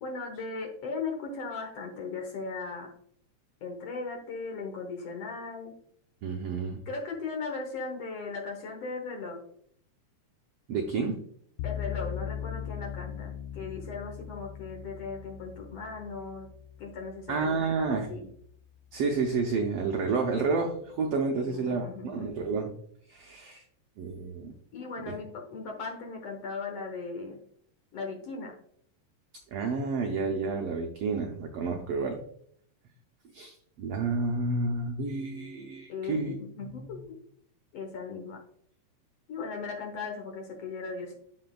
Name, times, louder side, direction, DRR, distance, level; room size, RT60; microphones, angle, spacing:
voice 1, 0.0-2.9 3.6-5.7 6.9-9.4 11.6-16.5 16.8-17.3 17.6-18.2 21.3-22.4 24.7-27.4 27.9-28.6 35.9-37.2 37.7-38.4 39.3-41.2, left 4 dB, 60° left, 2 dB, 1.7 m, -38 dB
voice 2, 6.2-6.8 10.7-11.2 17.3-18.1 18.9-22.7 23.1-23.6 24.0-24.5 25.0-25.2 29.5-32.2 33.3-36.4 36.6-36.7, right 4 dB, 85° right, 2 dB, 1.3 m, -30 dB
sound 1, 11.6-18.7, left 9 dB, 85° left, 1.5 m, -40 dB
12.5 x 4.3 x 2.3 m, 0.64 s
omnidirectional pair, 3.7 m